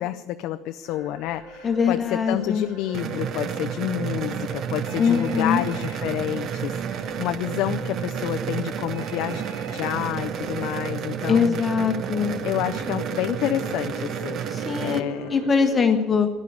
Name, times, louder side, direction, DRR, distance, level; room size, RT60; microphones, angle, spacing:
voice 1, 0.0-9.4 9.7-11.6 12.4-14.4 14.8-15.3, left 13 dB, 60° left, 8 dB, 0.5 m, -29 dB
sound 1, 0.8-15.9, right 1 dB, 85° right, 6.8 m, -40 dB
voice 2, 1.6-2.7 5.0-5.6 11.3-12.3 14.5-15.0 15.3-16.3, left 6 dB, 20° left, 5 dB, 1.1 m, -22 dB
sound 2, 2.9-15.0, right 8 dB, 40° right, 0.7 m, -31 dB
Telephone, 4.9-6.0 8.9-10.0, right 3 dB, 65° right, 4.9 m, -42 dB
13.0 x 10.5 x 9.6 m, 1.2 s
cardioid pair, 155°, 0 cm